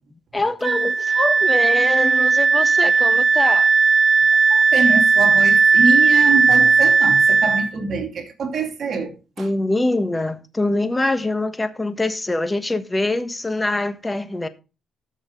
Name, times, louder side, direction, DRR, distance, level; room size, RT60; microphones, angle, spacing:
voice 1, 0.3-3.7 9.4-14.5, left 2 dB, 15° left, 1.3 m, -24 dB
Wind instrument woodwind instrument, 0.6-7.7, right 4 dB, 80° right, 1.3 m, -16 dB
voice 2, 4.5-9.5, right 4 dB, 60° right, 2.6 m, -25 dB
13.5 x 6.5 x 3.8 m
cardioid pair, 90°, 0 cm